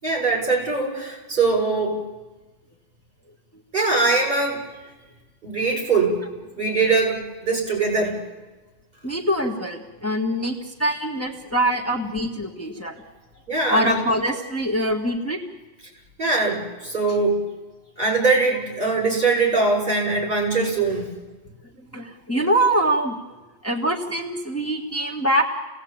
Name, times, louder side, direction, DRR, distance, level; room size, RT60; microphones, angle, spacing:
voice 1, 0.0-2.0 3.7-4.6 5.4-6.2 6.6-8.2 13.5-14.0 16.2-17.4 18.0-21.1, right 3 dB, 45° right, -1 dB, 6.9 m, -22 dB
voice 2, 9.0-13.0 13.7-15.4 21.9-23.4 23.6-25.4, right 1 dB, 10° left, 0 dB, 1.6 m, -24 dB
28.5 x 17.5 x 8.8 m, 1.2 s
omnidirectional pair, 1.3 m